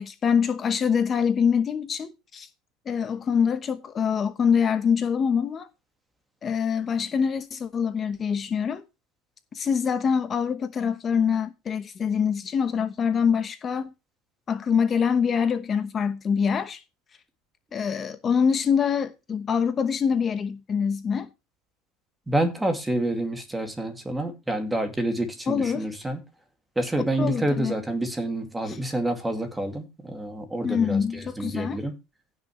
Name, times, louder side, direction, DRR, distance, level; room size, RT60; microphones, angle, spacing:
voice 1, 0.0-2.5 2.9-5.7 6.4-8.8 9.5-13.9 14.5-16.8 17.7-21.3 25.5-25.9 27.2-27.7 28.7-28.8 30.6-31.8, left 6 dB, 25° left, 1.0 m, -25 dB
voice 2, 22.3-26.2 26.8-31.9, right 1 dB, 10° right, 2.3 m, -28 dB
16.0 x 6.5 x 3.2 m
cardioid pair, 145°, 0 cm